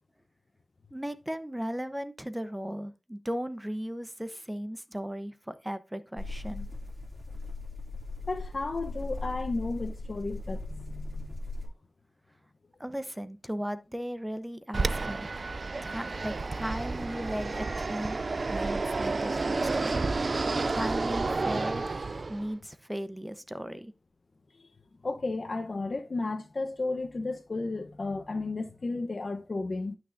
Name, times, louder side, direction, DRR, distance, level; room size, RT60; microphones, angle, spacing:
voice 1, 0.9-6.7 12.8-15.3 15.8-18.2 18.5-20.0 20.7-21.8 22.3-23.9, equal, 10° right, 0.9 m, -36 dB
sound 1, 6.2-11.7, left 2 dB, 20° left, 2.6 m, -38 dB
voice 2, 8.3-11.4 25.0-30.0, left 3 dB, 65° left, 0.9 m, -33 dB
Fixed-wing aircraft airplane, 14.7-22.5, right 3 dB, 65° right, 0.4 m, -30 dB
12.0 x 6.2 x 2.6 m
cardioid pair, 45°, 0 cm